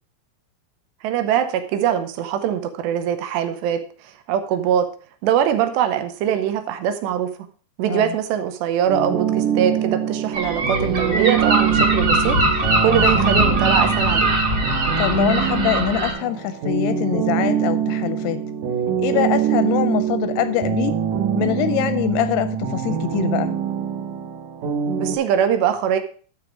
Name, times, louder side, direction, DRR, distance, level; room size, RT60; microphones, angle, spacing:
voice 1, 1.0-3.8 4.3-4.9 5.2-7.3 7.8-14.3 25.0-26.0, right 9 dB, 85° right, 8 dB, 3.0 m, -22 dB
sound 1, 8.9-25.2, right 8 dB, 70° right, 1.7 m, -24 dB
Gull seagull, 10.3-16.1, right 1 dB, 30° right, 2.2 m, -21 dB
voice 2, 15.0-18.4 19.0-21.0 21.4-23.5, left 12 dB, 85° left, 12 dB, 2.5 m, -23 dB
12.5 x 5.3 x 4.9 m, 0.41 s
omnidirectional pair, 5.0 m